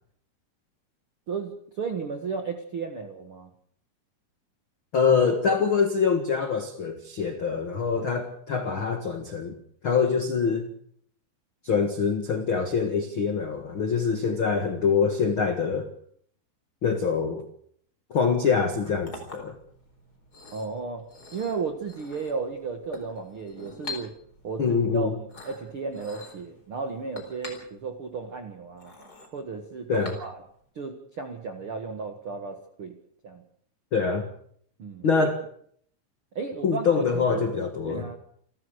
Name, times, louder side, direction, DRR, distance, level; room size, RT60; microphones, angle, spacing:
voice 1, 1.3-3.5 20.5-21.1 21.3-24.1 24.4-28.9 29.3-30.4 30.7-33.0 33.2-33.4 34.8-35.3 36.3-36.8 37.1-38.2, right 4 dB, 65° right, 5 dB, 1.3 m, -34 dB
voice 2, 4.9-9.5 9.8-10.7 11.6-15.9 16.8-17.4 18.1-19.6 24.6-25.1 29.9-30.2 33.9-34.2 35.0-35.4 36.6-38.1, left 5 dB, 75° left, 6 dB, 1.1 m, -24 dB
Chink clink, 18.6-30.7, left 3 dB, 20° left, 4.4 m, -45 dB
29.0 x 14.5 x 6.6 m, 0.64 s
omnidirectional pair, 5.2 m